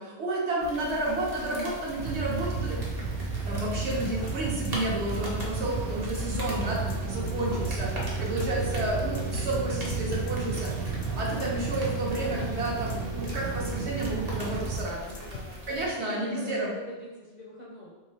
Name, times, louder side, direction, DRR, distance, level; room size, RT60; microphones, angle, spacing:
voice 1, 0.0-2.8 3.5-15.1 15.7-16.7, right 1 dB, 70° right, -4 dB, 1.1 m, -31 dB
sound 1, 0.6-15.9, left 1 dB, 40° right, 0.7 m, -40 dB
sound 2, 2.0-14.8, right 4 dB, 85° right, 0.9 m, -32 dB
sound 3, 3.9-4.3 4.6-4.7 5.0-5.1 5.4-5.5 5.8-5.9 6.1-6.6 6.9-7.3 7.6-7.7 8.0-8.1 8.4-8.5 8.8-8.9 9.1-9.6 9.9-10.3 10.6-10.7 11.0-11.1 11.4-11.5 11.8-11.9 12.1-12.6 12.9-13.3 13.6-13.7 14.0-14.1 14.4-14.5 14.8-14.9 15.1-15.6, left 4 dB, 90° left, 0.9 m, -42 dB
voice 2, 7.0-7.8 15.0-17.9, equal, 50° left, -5 dB, 0.5 m, -44 dB
3.6 x 2.8 x 2.8 m, 1.2 s
omnidirectional pair, 1.2 m